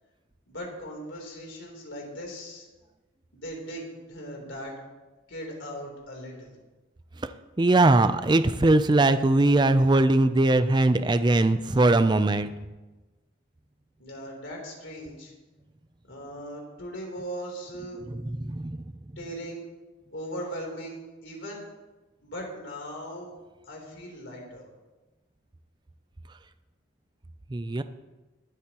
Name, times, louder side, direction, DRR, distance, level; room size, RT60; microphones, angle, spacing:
voice 1, 0.5-2.7 3.3-4.7 5.3-6.5 14.0-15.3 16.1-18.0 19.2-19.7 20.1-21.7 22.2-23.3 23.6-24.7, equal, 75° left, -1 dB, 3.3 m, -39 dB
voice 2, 7.6-12.5 18.1-18.8 27.5-27.8, right 2 dB, 20° right, 11 dB, 0.4 m, -21 dB
22.0 x 8.3 x 2.9 m, 1.1 s
head